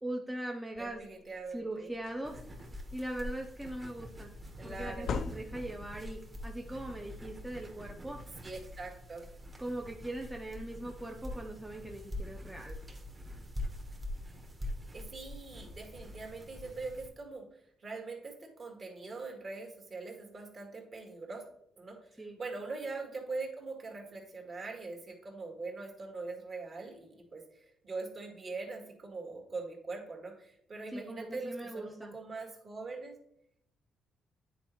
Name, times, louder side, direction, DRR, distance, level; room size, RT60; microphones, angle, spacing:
voice 1, 0.0-1.0 1.5-2.4 2.9-4.3 4.6-8.2 9.6-12.8 22.2-22.4 30.9-32.2, right 1 dB, 10° right, 2 dB, 0.7 m, -40 dB
sound 1, 0.7-1.0 1.5-1.6 1.9-3.0 4.7-5.9, left 5 dB, 65° left, 0.5 m, -39 dB
voice 2, 0.8-1.9 4.6-5.1 8.4-9.3 14.9-17.4 17.8-21.4 21.8-33.1, right 3 dB, 45° right, 1 dB, 1.9 m, -42 dB
sound 2, 2.2-17.1, left 1 dB, 30° right, 1.3 m, -44 dB
9.4 x 4.0 x 3.1 m, 0.71 s
cardioid pair, 90°, 0 cm